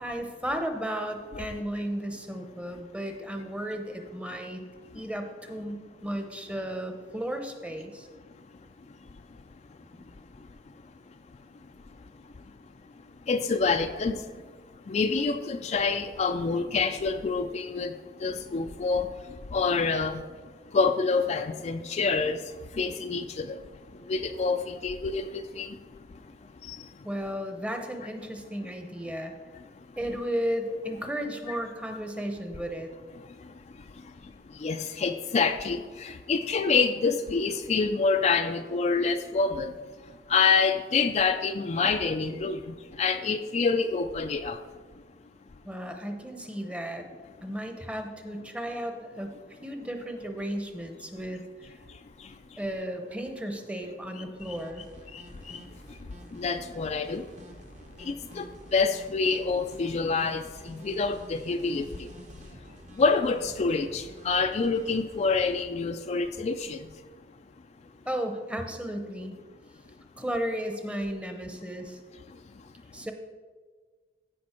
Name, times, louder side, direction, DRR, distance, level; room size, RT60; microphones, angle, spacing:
voice 1, 0.0-4.6 4.9-8.1 9.9-10.0 27.0-29.3 30.0-32.9 45.6-47.1 47.4-49.4 49.6-51.4 52.6-54.8 68.1-69.3 70.2-72.0 72.9-73.1, equal, 5° right, 5 dB, 0.8 m, -34 dB
voice 2, 8.9-9.4 9.7-9.8 10.2-10.5 11.1-11.2 11.6-12.4 13.0-14.5 14.7-27.1 29.5-29.9 30.7-30.8 31.5-31.6 33.2-44.6 51.9-52.6 54.4-54.6 55.1-57.5 58.0-62.1 62.5-67.0 72.3-72.7, left 4 dB, 40° left, 7 dB, 0.4 m, -28 dB
sound 1, 54.4-65.6, right 1 dB, 45° right, 1.1 m, -49 dB
15.0 x 5.2 x 4.4 m, 1.5 s
head